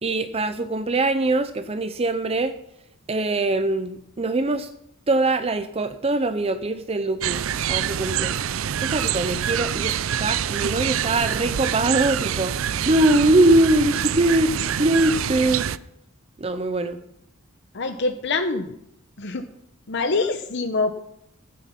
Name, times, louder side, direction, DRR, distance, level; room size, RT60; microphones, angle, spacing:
voice 1, 0.0-2.6 3.1-4.7 5.1-8.4 8.8-15.7 16.4-17.0, right 2 dB, 30° right, 10 dB, 0.6 m, -22 dB
sound 1, 7.2-15.8, right 9 dB, 65° right, 0.4 m, -26 dB
voice 2, 17.7-18.7 19.2-19.4 19.9-20.9, left 3 dB, 55° left, 8 dB, 0.9 m, -25 dB
15.0 x 9.5 x 5.8 m, 0.78 s
head